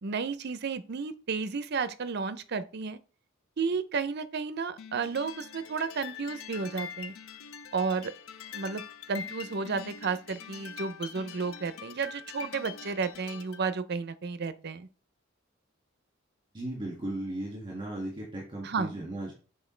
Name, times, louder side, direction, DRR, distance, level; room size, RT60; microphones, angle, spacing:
voice 1, 0.0-3.0 3.6-7.1 7.7-8.1 8.5-8.8 9.1-14.9 18.6-19.0, right 5 dB, 55° right, 0.6 m, -32 dB
sound 1, 4.8-13.6, left 7 dB, 85° left, 0.5 m, -44 dB
voice 2, 16.5-19.3, right 1 dB, 25° right, 2.0 m, -36 dB
7.1 x 4.3 x 3.2 m
head